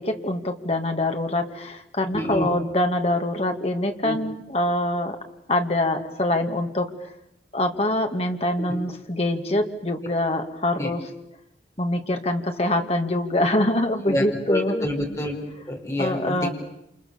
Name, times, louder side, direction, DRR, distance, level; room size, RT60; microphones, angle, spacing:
voice 1, 0.0-5.2 5.5-6.9 7.5-11.0 11.8-14.9 16.0-16.5, left 1 dB, 35° left, 5 dB, 2.4 m, -24 dB
voice 2, 2.1-2.5 4.0-4.2 8.7-8.8 10.8-10.9 14.1-15.4 15.7-16.5, left 1 dB, 15° left, 1 dB, 5.2 m, -27 dB
29.0 x 28.0 x 7.2 m, 0.83 s
head